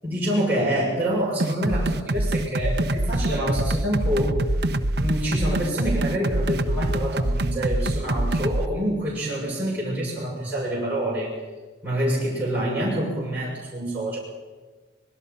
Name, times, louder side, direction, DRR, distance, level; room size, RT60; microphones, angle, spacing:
voice 1, 0.0-4.3 4.9-11.3 11.8-14.2, right 1 dB, 10° right, -7 dB, 6.9 m, -26 dB
sound 1, 1.4-8.7, right 1 dB, 60° right, 1.0 m, -24 dB
24.5 x 22.0 x 5.7 m, 1.3 s
head